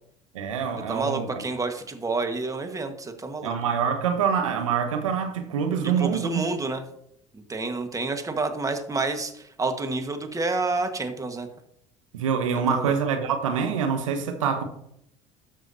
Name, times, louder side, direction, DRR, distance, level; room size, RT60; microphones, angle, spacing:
voice 1, 0.3-1.4 3.4-6.5 12.1-14.6, right 7 dB, 85° right, 0.9 m, -25 dB
voice 2, 0.9-3.5 5.8-6.8 7.3-11.5 12.7-12.9, right 3 dB, 20° right, 1.3 m, -29 dB
13.0 x 5.7 x 2.7 m
hypercardioid pair, 70°, 16 cm